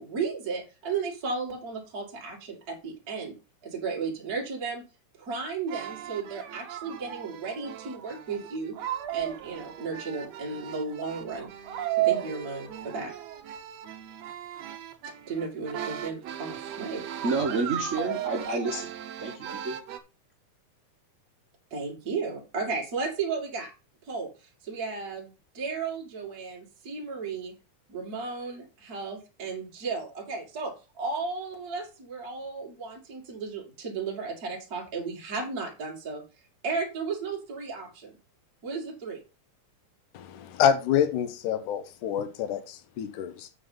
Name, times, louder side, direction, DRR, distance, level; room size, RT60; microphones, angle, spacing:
voice 1, 0.0-3.3 3.6-4.8 5.2-8.7 9.1-11.5 12.0-13.1 15.3-17.0 18.5-18.6 21.7-23.7 24.1-24.3 24.6-27.5 27.9-36.2 36.6-38.1 38.6-39.2, right 4 dB, 35° right, 2.2 m, -34 dB
sound 1, 5.7-20.0, right 12 dB, 65° right, 1.8 m, -35 dB
voice 2, 17.2-18.9 19.2-19.8, right 3 dB, 90° right, 0.6 m, -29 dB
voice 3, 40.1-43.5, left 9 dB, 80° left, 2.4 m, -27 dB
8.0 x 5.3 x 5.4 m
omnidirectional pair, 3.6 m